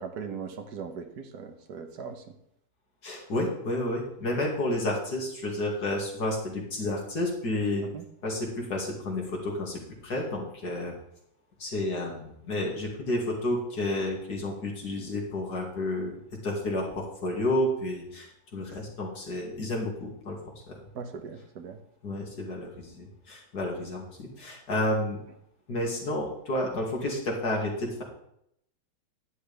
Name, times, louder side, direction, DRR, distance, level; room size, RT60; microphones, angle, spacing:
voice 1, 0.0-2.2 7.9-8.0 20.9-21.8, right 6 dB, 70° right, 5 dB, 1.6 m, -39 dB
voice 2, 3.0-7.8 8.2-10.9 11.6-16.1 16.4-20.8 22.0-25.2 25.7-28.0, left 1 dB, 70° left, -1 dB, 3.0 m, -31 dB
11.5 x 10.5 x 3.5 m, 0.73 s
omnidirectional pair, 1.8 m